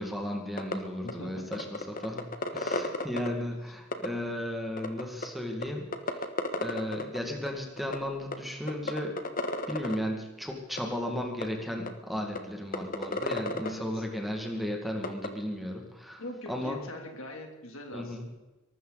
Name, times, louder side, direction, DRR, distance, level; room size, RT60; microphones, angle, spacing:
voice 1, 0.0-6.3 6.6-9.2 9.7-16.2 16.5-16.8 17.9-18.2, left 1 dB, ahead, 1 dB, 2.1 m, -35 dB
sound 1, 0.6-0.7 1.1-1.2 1.5-3.3 3.9-4.1 4.8-5.3 5.6-5.7 5.9-7.2 7.5-7.6 7.8-8.0 8.3-8.4 8.7-10.0 10.8-10.9 11.4-11.5 11.9-12.0 12.4-12.5 12.7-13.7 15.0-15.3, left 2 dB, 40° left, 1.4 m, -31 dB
voice 2, 1.0-1.6 13.6-14.0 16.2-18.4, left 1 dB, 60° left, 3 dB, 3.1 m, -42 dB
23.0 x 13.0 x 4.1 m, 1.1 s
head